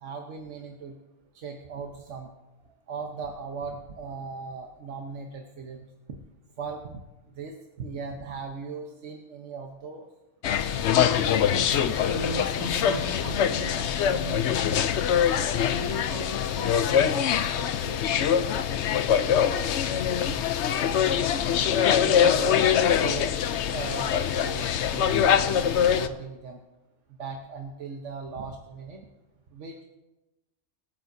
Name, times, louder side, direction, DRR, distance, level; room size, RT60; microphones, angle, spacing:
voice 1, 0.0-1.0 1.3-2.3 2.9-6.2 6.6-10.1 19.9-20.4 21.9-22.7 22.9-23.4 23.7-26.6 27.2-29.1 29.5-29.8, right 4 dB, 75° right, 3 dB, 1.3 m, -38 dB
sound 1, 10.4-26.1, left 8 dB, 70° left, 0.9 m, -24 dB
voice 2, 11.5-14.9 15.7-19.0, right 1 dB, 30° right, 2 dB, 1.7 m, -38 dB
25.0 x 9.3 x 2.7 m, 1.0 s
omnidirectional pair, 1.3 m